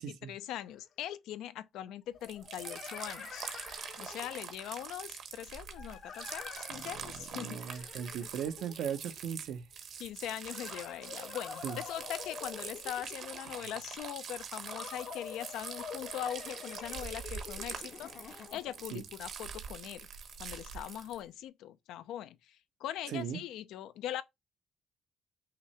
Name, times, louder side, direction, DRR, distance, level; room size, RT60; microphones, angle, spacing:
voice 1, 0.0-3.5 4.0-7.9 10.0-20.1 20.4-24.2, left 12 dB, 90° left, 0.4 m, -41 dB
sound 1, 0.7-0.8 2.1-4.5 5.8-9.2 10.4-13.5 14.7-18.9, left 6 dB, 65° left, 0.8 m, -47 dB
sound 2, 2.2-21.2, right 6 dB, 65° right, 1.1 m, -44 dB
voice 2, 7.3-9.7 11.6-11.8 18.9-19.0 23.1-23.4, right 8 dB, 85° right, 0.7 m, -37 dB
5.7 x 2.8 x 3.1 m
cardioid pair, 90°, 0 cm